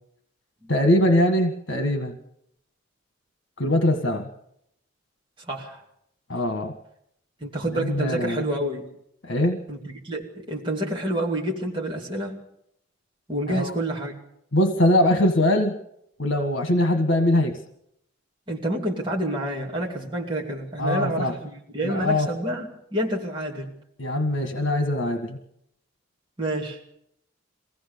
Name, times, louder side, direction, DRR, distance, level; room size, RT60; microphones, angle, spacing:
voice 1, 0.7-2.2 3.6-4.3 6.3-6.7 7.7-8.5 9.2-9.6 13.5-13.7 14.5-15.8 16.2-17.6 20.8-21.3 21.8-22.3 24.0-25.4, left 1 dB, 65° left, 6 dB, 1.7 m, -22 dB
voice 2, 5.4-5.8 7.4-8.9 9.7-12.4 13.3-14.1 18.5-23.7 26.4-26.8, right 1 dB, 25° right, -2 dB, 2.6 m, -28 dB
23.5 x 17.0 x 6.8 m, 0.75 s
head